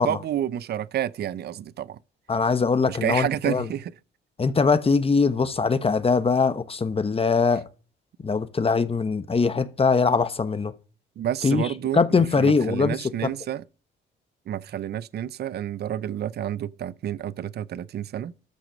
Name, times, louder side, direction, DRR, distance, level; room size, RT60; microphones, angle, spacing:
voice 1, 0.0-2.0 2.9-3.9 11.2-13.6 14.5-18.3, right 11 dB, 55° right, 0.5 m, -29 dB
voice 2, 2.3-3.7 4.4-7.6 8.2-10.7 11.4-13.0, left 4 dB, 30° left, 1.1 m, -22 dB
13.5 x 6.3 x 5.2 m
cardioid pair, 90°, 20 cm